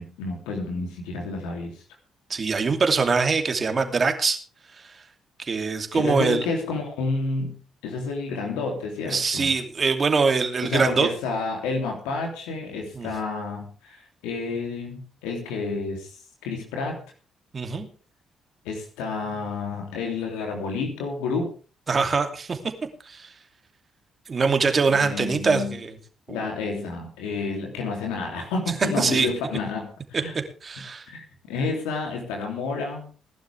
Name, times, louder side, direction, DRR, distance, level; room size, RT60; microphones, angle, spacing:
voice 1, 0.0-1.8 5.9-9.5 10.6-16.2 16.4-17.0 18.6-21.5 24.9-25.8 26.3-30.3 31.1-33.1, left 3 dB, 75° left, 2 dB, 3.1 m, -30 dB
voice 2, 2.3-4.4 4.8-5.0 5.4-6.5 9.1-11.1 12.9-13.1 17.5-17.9 21.9-22.6 23.0-23.3 24.3-26.0 26.3-26.4 29.0-29.3 30.6-31.1, right 4 dB, 40° right, 6 dB, 2.8 m, -23 dB
19.5 x 11.5 x 3.5 m, 0.37 s
hypercardioid pair, 45°, 0 cm